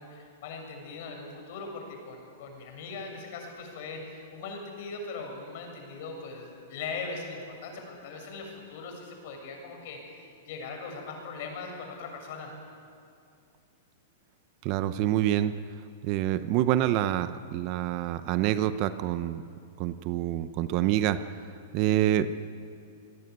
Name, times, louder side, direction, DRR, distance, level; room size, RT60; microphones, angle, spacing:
voice 1, 0.0-12.5, left 4 dB, 50° left, 3 dB, 7.2 m, -40 dB
voice 2, 14.6-15.6 16.0-19.4 19.8-21.2 21.7-22.3, right 12 dB, 35° right, 12 dB, 0.8 m, -26 dB
26.5 x 21.0 x 9.6 m, 2.5 s
supercardioid pair, 165°, 0 cm